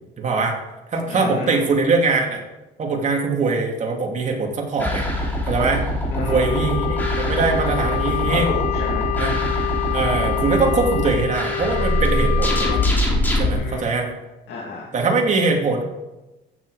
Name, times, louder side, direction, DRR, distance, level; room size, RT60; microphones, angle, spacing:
voice 1, 0.2-0.6 0.9-2.4 2.8-5.1 5.5-5.8 6.2-8.5 9.2-9.3 9.9-12.8 13.4-14.1 14.9-15.8, right 3 dB, 40° right, 1 dB, 2.6 m, -22 dB
voice 2, 1.1-1.6 6.1-6.6 8.3-9.1 13.5-13.8 14.5-14.9, left 4 dB, 65° left, -2 dB, 2.5 m, -31 dB
sound 1, 4.8-13.5, left 1 dB, 10° left, 3.0 m, -23 dB
Wind instrument woodwind instrument, 6.2-12.9, left 10 dB, 45° left, 0.5 m, -27 dB
14.5 x 7.7 x 5.0 m, 1.0 s
cardioid pair, 125°, 19 cm